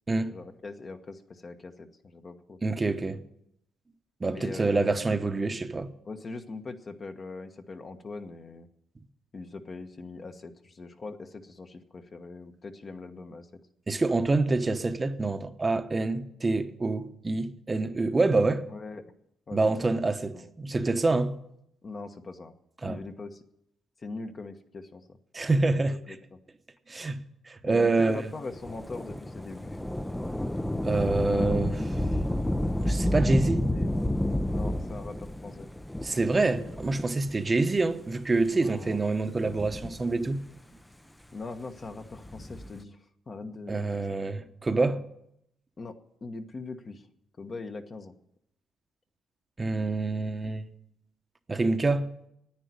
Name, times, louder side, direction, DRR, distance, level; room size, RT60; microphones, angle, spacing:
voice 1, 0.3-2.6 4.3-5.2 6.0-8.7 9.3-13.5 18.7-19.0 19.5-19.6 20.3-20.5 21.8-22.5 22.8-23.4 24.0-25.2 25.8-26.4 27.6-29.8 33.7-33.9 34.5-35.7 38.5-39.0 41.3-43.0 43.3-43.9 45.8-47.1 47.4-48.1, left 3 dB, 40° left, 1.2 m, -41 dB
voice 2, 2.6-3.2 4.2-5.9 13.9-18.6 19.5-21.4 22.8-23.0 25.3-26.0 26.9-27.2 27.5-28.2 30.8-31.9 32.8-33.6 36.0-40.4 43.7-45.0 49.6-50.7 51.5-52.1, right 3 dB, 25° right, 0.9 m, -26 dB
Thunder / Rain, 28.5-37.5 38.2-38.3 39.3-40.5 42.1-42.8, left 1 dB, 10° left, 0.5 m, -30 dB
10.0 x 9.3 x 9.5 m
cardioid pair, 90°, 0 cm